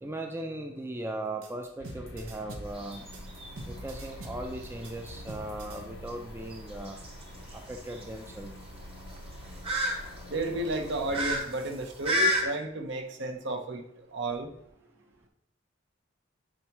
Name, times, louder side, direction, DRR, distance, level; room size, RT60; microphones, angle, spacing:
voice 1, 0.0-3.1 3.7-7.0 7.5-8.5, right 1 dB, 10° right, 4 dB, 0.5 m, -38 dB
sound 1, 1.4-5.8, right 1 dB, 90° right, 1.0 m, -44 dB
sound 2, 1.8-11.4, left 1 dB, 60° left, 0.6 m, -47 dB
sound 3, 2.6-12.4, equal, 30° right, 1.1 m, -34 dB
voice 2, 10.3-13.8 14.1-14.5, right 2 dB, 60° right, 4 dB, 0.9 m, -32 dB
8.9 x 4.5 x 3.0 m, 0.75 s
head